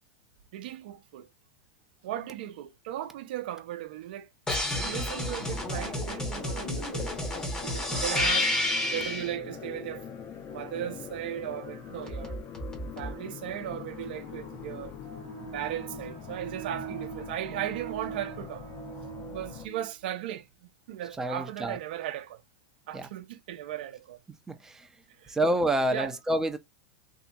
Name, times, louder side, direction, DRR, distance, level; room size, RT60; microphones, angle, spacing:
voice 1, 0.5-1.3 2.0-4.3 4.7-7.1 7.6-8.5 8.9-10.0 10.5-12.4 13.0-20.5 20.9-22.4 22.9-24.2 25.2-25.4 25.9-26.1, right 12 dB, 65° right, 0.6 m, -37 dB
sound 1, 4.5-9.3 12.1-13.1, left 1 dB, 15° left, 0.9 m, -30 dB
sound 2, 4.7-19.7, left 7 dB, 40° left, 0.7 m, -43 dB
voice 2, 21.2-21.8 22.9-23.1 24.5-24.9 25.3-26.6, right 1 dB, 10° right, 0.5 m, -28 dB
2.7 x 2.7 x 2.2 m
hypercardioid pair, 120°, 5 cm